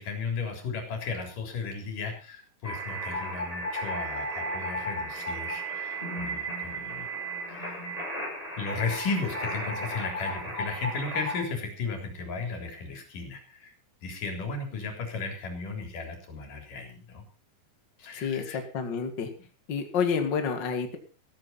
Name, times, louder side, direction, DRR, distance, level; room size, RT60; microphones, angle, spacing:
voice 1, 0.0-7.1 7.5-8.0 8.6-13.7 14.0-17.2 18.0-18.6, left 4 dB, 90° left, 4 dB, 5.3 m, -35 dB
sound 1, 2.6-11.4, right 1 dB, 10° left, 7.8 m, -34 dB
voice 2, 18.1-19.3 19.7-21.0, left 6 dB, 40° left, 6 dB, 2.2 m, -29 dB
14.5 x 14.0 x 4.2 m, 0.36 s
omnidirectional pair, 3.7 m